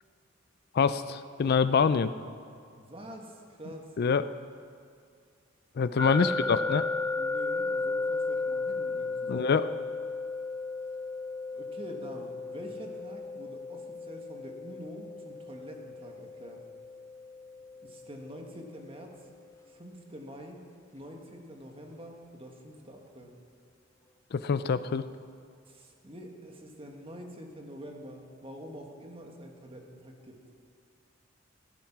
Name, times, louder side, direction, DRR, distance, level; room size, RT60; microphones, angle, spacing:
voice 1, 0.7-2.1 4.0-4.2 5.8-6.8 9.3-9.7 24.3-25.0, left 5 dB, 50° left, 13 dB, 0.4 m, -25 dB
voice 2, 2.7-3.9 6.1-6.8 7.1-9.5 11.5-16.6 17.8-19.1 19.7-20.6 20.9-23.3 25.7-30.4, equal, 30° right, 2 dB, 1.6 m, -46 dB
sound 1, 6.0-18.9, left 3 dB, 15° left, 0.9 m, -35 dB
16.5 x 10.5 x 5.9 m, 2.2 s
head